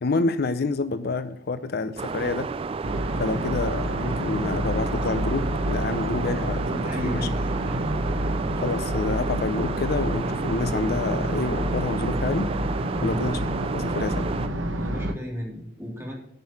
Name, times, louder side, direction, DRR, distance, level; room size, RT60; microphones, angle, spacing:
voice 1, 0.0-2.5 3.2-7.3 8.6-12.5 13.0-13.4 13.7-14.3, left 3 dB, 55° left, 12 dB, 0.5 m, -28 dB
sound 1, 2.0-14.5, right 4 dB, 30° right, 0.3 m, -32 dB
sound 2, 2.8-15.1, right 1 dB, 85° right, 1.1 m, -28 dB
voice 2, 5.9-7.8 13.0-13.2 14.7-16.1, equal, 15° right, -3 dB, 3.2 m, -35 dB
8.9 x 6.2 x 7.1 m, 0.72 s
head